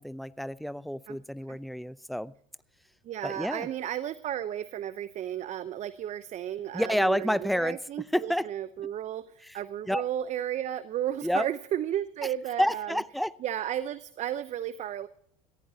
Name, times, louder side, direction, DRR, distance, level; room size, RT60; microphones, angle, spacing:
voice 1, 0.0-2.3 3.2-3.7 6.7-7.8 8.1-8.5 9.9-10.0 11.2-11.5 12.6-13.3, equal, ahead, 18 dB, 0.6 m, -29 dB
voice 2, 3.0-13.0 13.4-15.1, right 11 dB, 45° right, 14 dB, 0.8 m, -33 dB
18.5 x 15.0 x 2.8 m, 0.66 s
hypercardioid pair, 80°, 17 cm